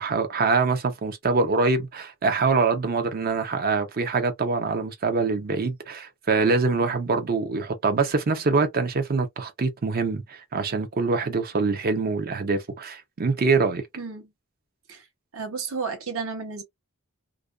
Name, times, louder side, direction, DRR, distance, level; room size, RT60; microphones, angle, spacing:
voice 1, 0.0-13.8, right 4 dB, 45° right, 0.6 m, -24 dB
voice 2, 15.3-16.6, right 5 dB, 65° right, 0.9 m, -32 dB
2.4 x 2.2 x 2.4 m
head